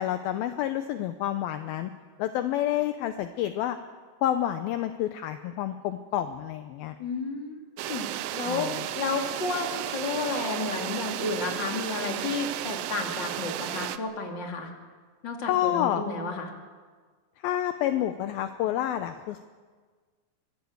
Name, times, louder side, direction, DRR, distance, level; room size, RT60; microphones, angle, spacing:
voice 1, 0.0-1.9 2.2-3.8 4.2-7.0 8.5-8.9 15.5-16.0 17.4-19.4, left 11 dB, 80° left, 9 dB, 2.3 m, -29 dB
voice 2, 7.0-14.7 15.2-16.5, left 4 dB, 30° left, 2 dB, 2.7 m, -32 dB
sound 1, 7.8-14.0, right 13 dB, 80° right, 2.1 m, -33 dB
24.5 x 18.0 x 8.0 m, 1.5 s
omnidirectional pair, 5.0 m